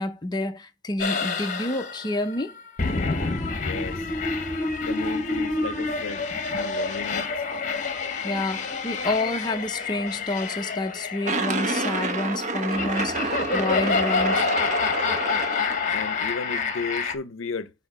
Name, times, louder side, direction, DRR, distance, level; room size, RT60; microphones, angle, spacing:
voice 1, 0.0-2.6 8.2-14.5, left 2 dB, 20° left, 0.6 m, -29 dB
sound 1, 1.0-17.1, left 4 dB, 40° left, 0.9 m, -28 dB
voice 2, 3.6-4.0 4.8-6.3 6.5-7.3 15.9-17.7, left 4 dB, 75° left, 0.6 m, -34 dB
sound 2, 11.2-16.2, right 3 dB, 40° right, 0.9 m, -29 dB
8.1 x 2.9 x 6.1 m
head